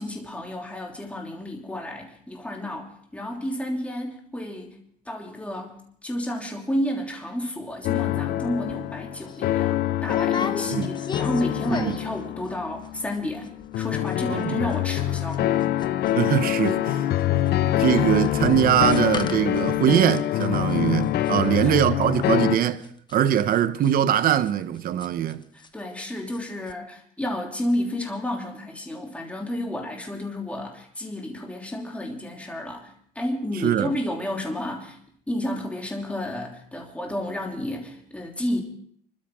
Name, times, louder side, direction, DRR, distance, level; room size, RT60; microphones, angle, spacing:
voice 1, 0.0-4.8 5.0-5.8 6.0-15.5 21.3-21.8 25.5-35.0 35.3-38.6, left 1 dB, 10° left, 3.2 m, -31 dB
sound 1, 7.8-22.6, left 13 dB, 70° left, 0.6 m, -25 dB
sound 2, 8.7-8.8 9.2-9.4 10.0-12.2 12.5-12.9 13.1-13.2 13.4-13.8 14.1-16.4 16.6-25.7 26.0-26.4 26.7-26.8, left 4 dB, 25° left, 1.1 m, -37 dB
voice 2, 14.3-14.6 16.1-17.0 17.6-22.8 23.1-25.4 33.6-33.9, right 10 dB, 60° right, 1.0 m, -22 dB
26.5 x 13.0 x 3.7 m
cardioid pair, 110°, 17 cm